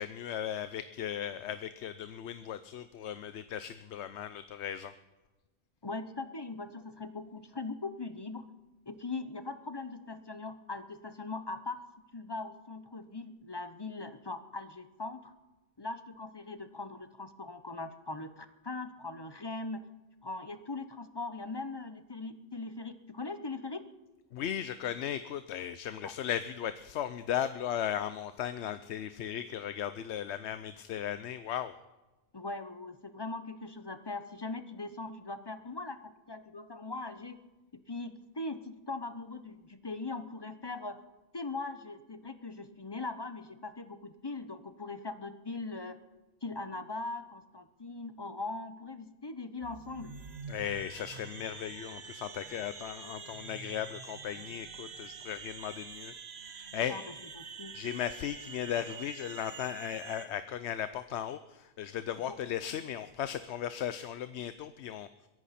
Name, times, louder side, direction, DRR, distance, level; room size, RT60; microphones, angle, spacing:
voice 1, 0.0-4.9 24.3-31.7 50.5-56.1 56.5-56.9 57.7-65.1, left 10 dB, 90° left, 12 dB, 0.9 m, -36 dB
voice 2, 5.8-8.5 8.9-11.8 12.1-15.3 15.8-19.8 20.2-23.8 26.0-26.1 32.3-37.4 37.9-41.0 41.3-46.0 46.4-50.1 56.9-57.0 57.3-57.7 62.3-62.4, left 3 dB, 25° left, 10 dB, 0.8 m, -40 dB
sound 1, 49.6-60.3, right 5 dB, 75° right, 1.3 m, -46 dB
23.0 x 11.0 x 4.2 m, 1.1 s
omnidirectional pair, 1.1 m